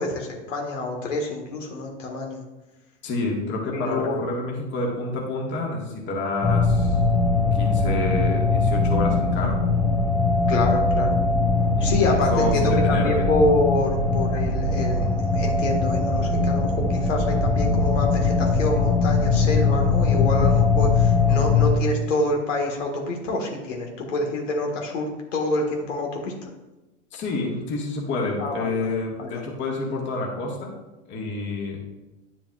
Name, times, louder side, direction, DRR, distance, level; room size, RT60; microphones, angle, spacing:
voice 1, 0.0-2.4 3.7-4.2 10.5-11.2 11.8-26.5 28.4-28.9 29.2-29.4, left 2 dB, 75° left, 1 dB, 1.7 m, -27 dB
voice 2, 3.0-7.0 7.5-9.6 11.8-13.1 27.1-30.7 31.1-31.8, left 2 dB, 30° left, -1 dB, 1.7 m, -28 dB
sound 1, 6.4-21.8, left 3 dB, 10° left, 0.7 m, -21 dB
9.8 x 7.0 x 2.4 m, 1.0 s
hypercardioid pair, 110°, 38 cm